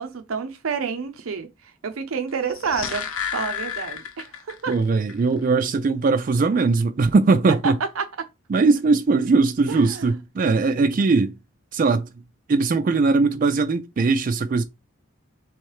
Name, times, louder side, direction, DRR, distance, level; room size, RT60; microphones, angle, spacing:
voice 1, 0.0-1.5 1.8-3.1 3.3-4.7 7.6-8.3 9.7-10.1, right 5 dB, 90° right, 0.6 m, -29 dB
sound 1, 2.3-4.8 5.1-5.2, left 8 dB, 85° left, 0.7 m, -31 dB
voice 2, 4.7-7.8 8.5-11.4 11.7-12.1 12.5-14.6, right 4 dB, 40° right, 0.3 m, -20 dB
3.5 x 3.1 x 4.7 m
head